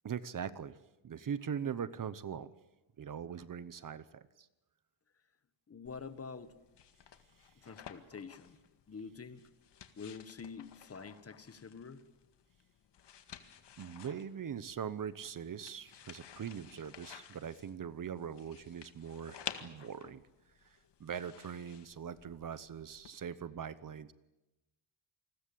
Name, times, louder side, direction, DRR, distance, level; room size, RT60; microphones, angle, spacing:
voice 1, 0.0-0.8 1.0-2.5 3.0-4.5 13.8-20.2 20.6-24.1, right 8 dB, 40° right, 16 dB, 1.0 m, -41 dB
voice 2, 5.7-6.5 7.5-8.6 8.9-9.5 9.9-12.1 20.0-20.1, left 5 dB, 30° left, 13 dB, 1.3 m, -47 dB
sound 1, 5.9-23.1, left 9 dB, 60° left, 2.0 m, -53 dB
28.5 x 21.0 x 8.6 m, 0.98 s
wide cardioid pair, 170°, 48 cm